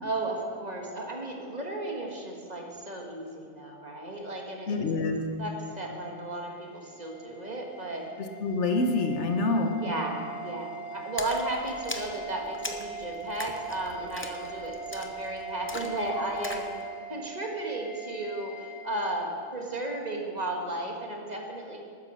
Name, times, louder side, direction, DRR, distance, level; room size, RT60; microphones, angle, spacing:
voice 1, 0.0-4.8 5.4-8.1 9.8-16.7 17.1-21.8, right 1 dB, 35° right, 0 dB, 1.6 m, -34 dB
voice 2, 4.7-5.2 8.2-9.8, left 3 dB, 70° left, 5 dB, 1.3 m, -26 dB
sound 1, 6.0-18.8, right 4 dB, ahead, 1.4 m, -41 dB
Splash splatter, 11.2-16.7, left 1 dB, 15° left, 0.5 m, -40 dB
12.0 x 9.6 x 6.3 m, 2.2 s
omnidirectional pair, 1.3 m